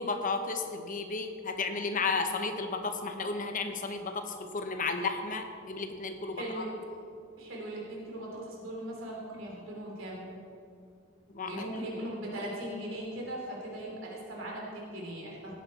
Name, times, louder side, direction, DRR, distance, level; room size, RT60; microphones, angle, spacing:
voice 1, 0.0-6.6 11.3-11.6, left 4 dB, 40° left, 6 dB, 1.0 m, -33 dB
voice 2, 6.3-6.7 7.4-10.4 11.4-15.5, right 1 dB, 70° right, -3 dB, 3.1 m, -39 dB
16.5 x 9.2 x 4.2 m, 2.4 s
head